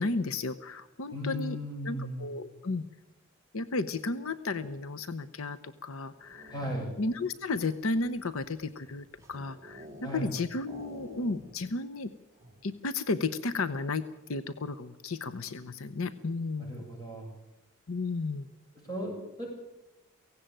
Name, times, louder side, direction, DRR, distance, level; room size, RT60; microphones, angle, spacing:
voice 1, 0.0-1.6 1.8-2.8 3.5-6.6 7.0-9.9 10.1-12.1 12.6-14.0 14.3-16.8 17.9-18.5, left 3 dB, 70° left, 12 dB, 0.8 m, -33 dB
voice 2, 1.1-2.3 6.5-6.9 10.0-10.3 16.7-17.3 18.9-19.5, equal, 15° left, -1 dB, 7.7 m, -36 dB
sound 1, 6.1-7.1 7.8-10.3 10.6-11.7 12.0-12.1 12.4-12.7, equal, 15° right, 3.2 m, -49 dB
17.0 x 16.5 x 9.0 m, 0.99 s
head